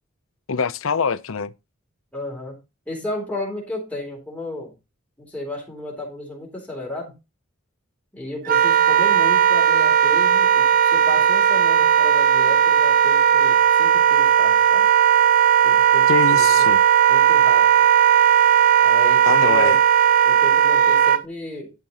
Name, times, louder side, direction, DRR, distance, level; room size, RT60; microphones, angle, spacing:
voice 1, 0.5-1.5 16.1-16.8 19.3-19.8, left 5 dB, 80° left, 0.6 m, -23 dB
voice 2, 2.1-2.5 2.9-4.7 5.2-7.1 8.1-14.9 15.6-16.7 17.1-17.7 18.8-19.8 20.2-21.7, left 1 dB, 5° left, 3.8 m, -33 dB
Wind instrument woodwind instrument, 8.5-21.2, right 9 dB, 40° right, 0.6 m, -16 dB
11.5 x 5.8 x 4.0 m
head